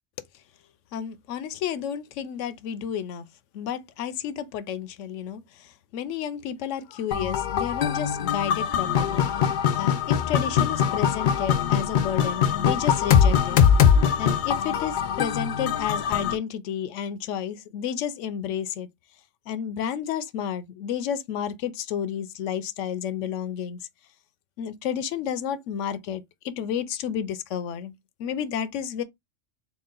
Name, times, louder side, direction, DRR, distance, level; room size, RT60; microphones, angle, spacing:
voice 1, 0.9-3.3 3.5-9.3 9.8-13.6 14.2-18.9 19.5-23.8 24.6-29.0, left 8 dB, 85° left, 0.9 m, -31 dB
sound 1, 7.1-16.3, left 8 dB, 60° left, 0.5 m, -22 dB
4.0 x 2.1 x 3.7 m
omnidirectional pair, 1.2 m